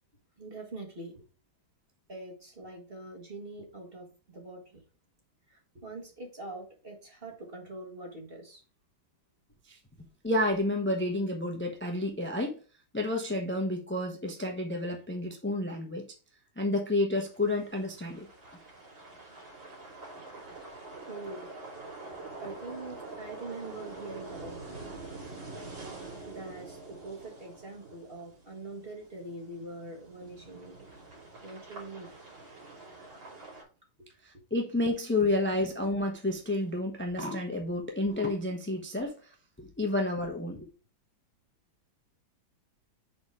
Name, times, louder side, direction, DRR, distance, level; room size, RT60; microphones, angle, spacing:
voice 1, 0.4-1.3 2.1-4.8 5.5-8.6 21.1-21.5 22.4-24.8 26.3-30.9 31.4-32.1 34.0-34.1 34.3-34.4, right 2 dB, 30° right, 1 dB, 2.0 m, -44 dB
voice 2, 10.2-12.5 12.9-16.1 16.6-18.3 34.2-40.7, left 2 dB, 15° left, 2 dB, 0.4 m, -30 dB
sound 1, 17.3-33.6, right 3 dB, 80° right, 3.9 m, -46 dB
6.1 x 4.3 x 4.8 m, 0.36 s
omnidirectional pair, 2.1 m